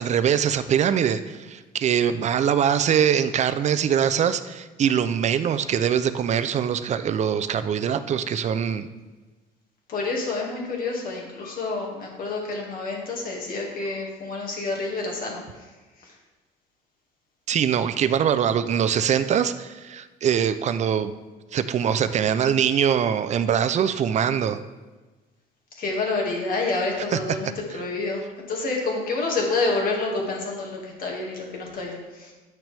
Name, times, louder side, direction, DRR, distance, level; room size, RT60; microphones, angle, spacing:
voice 1, 0.0-8.9 17.5-21.1 21.5-24.6 27.1-27.2, right 8 dB, 45° right, 12 dB, 0.5 m, -23 dB
voice 2, 9.9-15.7 16.0-16.1 25.8-32.3, left 3 dB, 55° left, -1 dB, 2.0 m, -28 dB
8.9 x 6.1 x 3.4 m, 1.2 s
cardioid pair, 110°, 17 cm